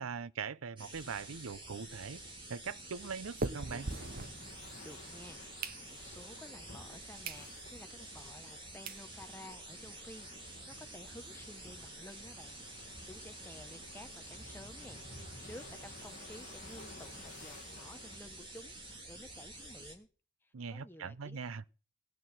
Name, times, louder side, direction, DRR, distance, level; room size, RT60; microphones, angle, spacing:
voice 1, 0.0-2.2 2.5-3.9 20.5-21.6, right 5 dB, 85° right, 0.6 m, -41 dB
sound 1, 0.8-20.0, right 2 dB, 25° right, 3.0 m, -49 dB
sound 2, 1.0-5.0 5.3-6.3 6.8-6.9 7.2-7.5 7.9-8.0 8.6-8.7 8.9-9.1 9.5-9.6 9.7-9.9 10.2-10.3 10.6-11.7, right 3 dB, 45° right, 0.8 m, -43 dB
sound 3, 3.6-18.2, left 2 dB, 40° left, 2.1 m, -54 dB
voice 2, 4.8-20.1 20.4-21.4, left 1 dB, 10° left, 1.0 m, -53 dB
18.0 x 6.6 x 9.0 m
head